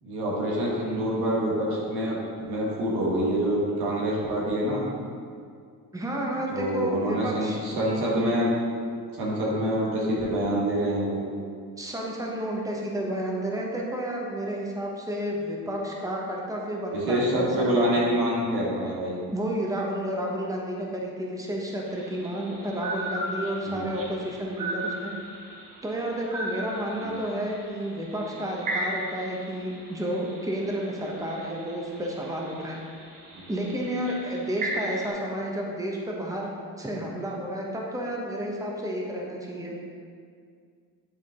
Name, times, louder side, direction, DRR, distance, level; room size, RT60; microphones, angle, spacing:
voice 1, 0.0-4.9 6.5-8.5 9.1-11.2 16.9-19.2 23.7-23.9 27.0-27.2, equal, 85° right, -5 dB, 1.8 m, -26 dB
voice 2, 5.9-7.6 11.8-18.0 19.3-25.1 25.8-32.8 33.5-36.5 36.8-39.7, right 1 dB, 10° right, -2 dB, 1.1 m, -31 dB
sound 1, 21.9-35.1, right 1 dB, 60° right, 1.5 m, -37 dB
10.0 x 3.7 x 3.7 m, 2.2 s
cardioid pair, 80°, 37 cm